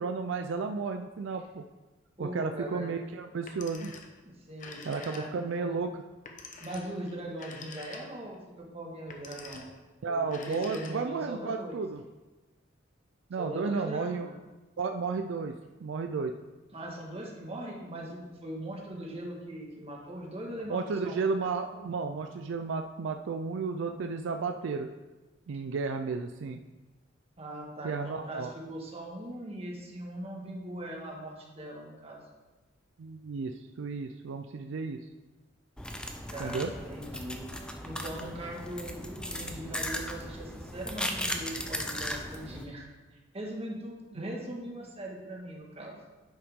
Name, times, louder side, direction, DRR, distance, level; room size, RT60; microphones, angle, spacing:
voice 1, 0.0-1.6 2.2-3.9 4.9-6.0 10.0-12.0 13.3-14.3 14.8-15.5 15.8-16.3 20.7-24.9 25.5-26.6 27.8-28.5 33.0-35.0 36.4-36.7, right 4 dB, 70° right, 6 dB, 0.4 m, -33 dB
voice 2, 2.2-2.9 4.2-5.8 6.6-9.7 10.1-11.8 13.4-14.3 16.7-21.3 27.4-32.2 36.3-42.8 43.1-46.0, right 1 dB, 30° right, -1 dB, 1.6 m, -40 dB
Telephone, 3.3-4.2 4.5-5.6 6.2-8.3 9.0-9.8 10.2-11.3, left 4 dB, 40° left, 0.9 m, -47 dB
sound 1, 35.8-42.6, left 1 dB, 5° left, 0.6 m, -37 dB
10.0 x 5.7 x 3.6 m, 1.2 s
head